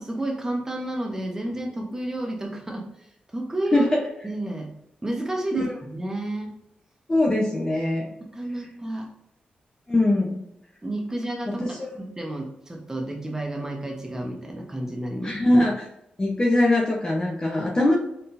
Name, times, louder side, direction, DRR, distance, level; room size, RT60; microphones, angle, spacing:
voice 1, 0.0-2.9 3.3-3.9 4.2-4.7 5.0-6.5 8.3-9.1 10.8-15.4, right 1 dB, 15° right, 1 dB, 1.0 m, -31 dB
voice 2, 3.7-4.0 5.5-5.7 7.1-8.1 9.9-10.4 11.5-11.9 15.2-15.9 16.2-18.0, left 1 dB, 25° left, -3 dB, 0.9 m, -22 dB
4.3 x 3.7 x 2.6 m, 0.81 s
wide cardioid pair, 95°, 3 cm